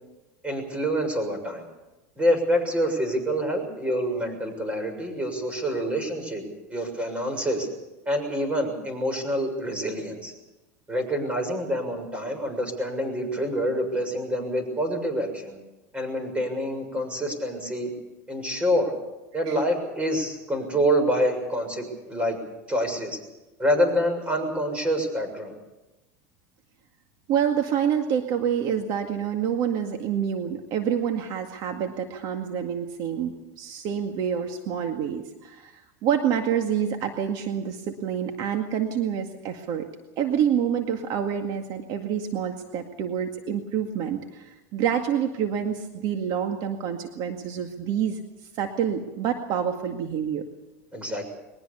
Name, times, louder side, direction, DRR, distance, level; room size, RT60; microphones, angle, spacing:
voice 1, 0.4-1.6 2.2-6.4 6.7-7.7 8.1-10.3 10.9-15.6 15.9-17.9 18.3-18.9 19.3-22.4 22.7-23.2 23.6-25.5 50.9-51.2, equal, 15° right, 6 dB, 6.8 m, -26 dB
voice 2, 27.3-39.9 40.2-48.2 48.5-50.4, right 8 dB, 55° right, 5 dB, 2.0 m, -27 dB
22.0 x 20.0 x 7.0 m, 1.0 s
supercardioid pair, 115°, 9 cm